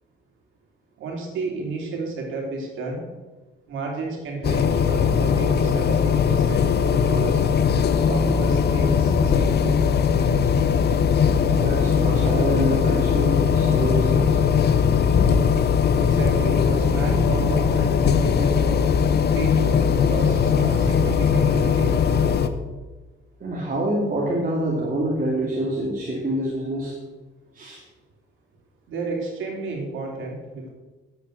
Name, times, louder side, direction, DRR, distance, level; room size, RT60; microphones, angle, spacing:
voice 1, 1.0-3.1 3.7-7.4 7.9-9.8 16.0-22.0 28.9-30.7, right 3 dB, 80° right, 0 dB, 3.3 m, -32 dB
sound 1, 4.4-22.5, left 6 dB, 55° left, 1.0 m, -20 dB
voice 2, 11.5-14.4 23.4-26.9 27.5-27.8, right 1 dB, 45° right, -4 dB, 2.8 m, -26 dB
10.5 x 8.2 x 6.6 m, 1.2 s
cardioid pair, 90°, 20 cm